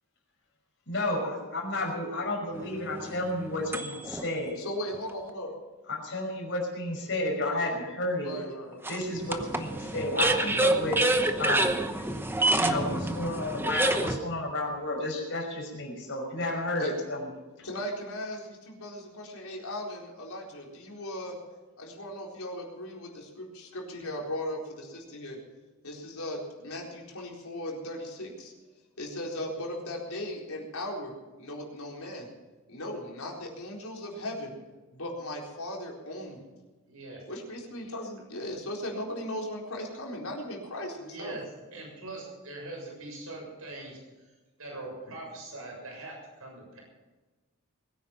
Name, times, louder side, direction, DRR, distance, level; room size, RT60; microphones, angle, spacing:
voice 1, 0.9-4.6 5.9-8.4 8.9-11.0 11.4-11.8 12.6-17.3, left 1 dB, 55° left, 1 dB, 5.6 m, -31 dB
sound 1, 2.5-4.2 4.9-5.0 8.8-14.2, right 2 dB, 10° right, 0.9 m, -27 dB
voice 2, 4.6-5.5 8.2-8.9 12.1-12.5 16.8-16.9 17.6-21.4 21.8-25.4 25.8-28.5 29.0-31.1 31.4-32.3 32.7-34.6 34.9-36.4 37.3-41.4, left 1 dB, 75° left, -1 dB, 4.2 m, -37 dB
voice 3, 36.9-37.2 41.1-44.0 44.6-46.8, right 2 dB, 75° right, -1 dB, 6.9 m, -42 dB
21.5 x 9.9 x 5.9 m, 1.2 s
head